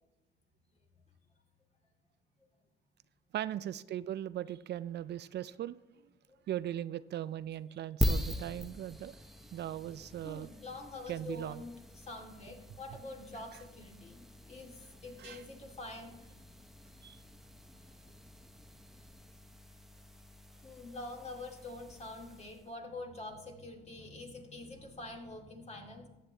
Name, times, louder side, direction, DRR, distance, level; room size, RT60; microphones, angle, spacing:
voice 1, 3.3-5.8 6.5-9.2 9.5-10.5 11.1-11.6 13.3-13.6 15.2-15.4 17.0-17.2, right 12 dB, 60° right, 15 dB, 0.4 m, -39 dB
sound 1, 8.0-22.7, left 1 dB, ahead, 0.9 m, -42 dB
voice 2, 10.1-16.1 20.6-26.1, left 2 dB, 35° left, 2 dB, 2.4 m, -46 dB
14.0 x 8.8 x 3.4 m, 1.1 s
cardioid pair, 90°, 20 cm